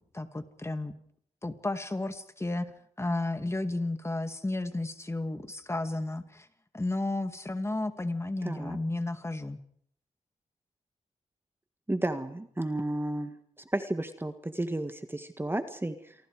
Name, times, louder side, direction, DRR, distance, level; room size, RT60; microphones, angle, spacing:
voice 1, 0.1-0.9 1.4-2.7 3.0-6.5 6.7-9.6, left 2 dB, 20° left, 9 dB, 2.2 m, -32 dB
voice 2, 8.4-8.8 11.9-13.3 13.6-16.1, right 1 dB, 15° right, 9 dB, 1.7 m, -32 dB
27.5 x 24.0 x 4.9 m, 0.65 s
cardioid pair, 70°, 13 cm